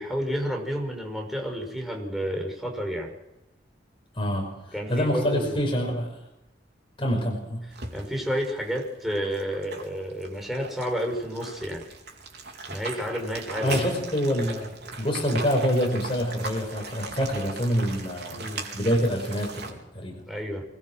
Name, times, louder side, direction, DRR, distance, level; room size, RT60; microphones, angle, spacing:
voice 1, 0.0-3.1 4.7-5.6 7.9-11.8 12.7-13.9 18.3-18.6 20.3-20.6, equal, ahead, 1 dB, 5.9 m, -30 dB
voice 2, 4.1-6.2 7.0-7.7 13.6-18.5 18.7-20.2, equal, 30° left, 1 dB, 5.3 m, -26 dB
sound 1, 7.7-19.7, right 3 dB, 60° right, 4.3 m, -39 dB
25.5 x 21.0 x 6.3 m, 0.90 s
head